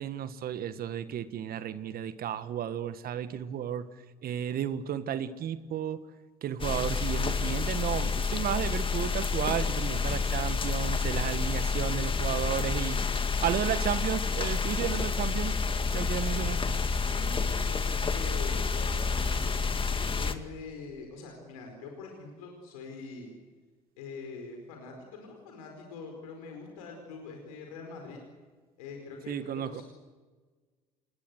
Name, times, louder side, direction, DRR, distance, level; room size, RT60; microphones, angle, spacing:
voice 1, 0.0-3.9 4.2-6.0 6.4-13.0 13.4-15.5 15.9-16.6 29.3-29.8, right 10 dB, 55° right, 12 dB, 1.6 m, -33 dB
sound 1, 6.6-20.3, left 4 dB, 30° left, 2.3 m, -29 dB
voice 2, 17.1-19.6 20.1-23.4 24.0-28.2 28.8-29.8, left 4 dB, 80° left, 2 dB, 4.8 m, -44 dB
27.0 x 22.0 x 8.1 m, 1.4 s
hypercardioid pair, 60°, 18 cm